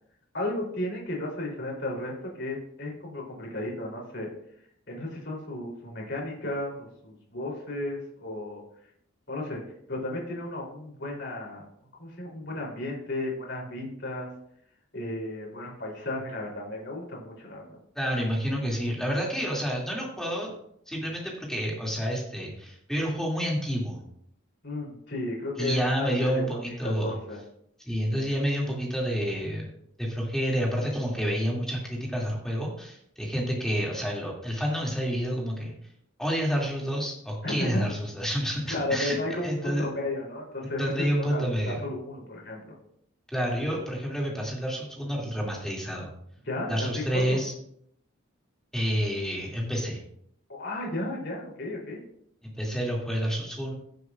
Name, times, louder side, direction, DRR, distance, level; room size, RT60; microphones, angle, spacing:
voice 1, 0.3-4.3 4.9-8.6 9.3-9.6 9.9-11.7 12.0-14.3 14.9-17.8 24.6-27.4 37.4-37.9 38.7-42.8 46.4-47.4 50.5-52.0, left 1 dB, 50° left, -2 dB, 3.3 m, -34 dB
voice 2, 18.0-20.5 20.9-24.0 25.6-27.2 27.8-29.6 30.0-35.7 36.2-39.2 39.4-39.9 40.6-41.8 43.3-46.1 46.7-47.5 48.7-50.0 52.4-53.7, equal, 5° left, -3 dB, 2.3 m, -29 dB
16.5 x 7.8 x 2.4 m, 0.70 s
head